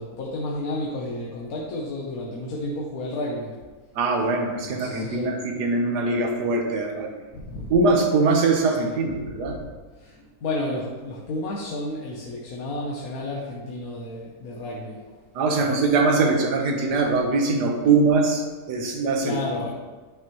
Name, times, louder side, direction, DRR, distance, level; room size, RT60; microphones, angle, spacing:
voice 1, 0.0-3.6 4.7-5.3 7.3-7.7 8.6-9.0 9.5-9.7 10.0-15.2 15.5-15.9 19.2-19.7, left 2 dB, 65° left, -3 dB, 1.3 m, -32 dB
voice 2, 3.9-7.1 7.7-9.5 15.3-19.4, right 3 dB, 85° right, 2 dB, 1.6 m, -22 dB
9.4 x 5.7 x 3.0 m, 1.3 s
omnidirectional pair, 1.7 m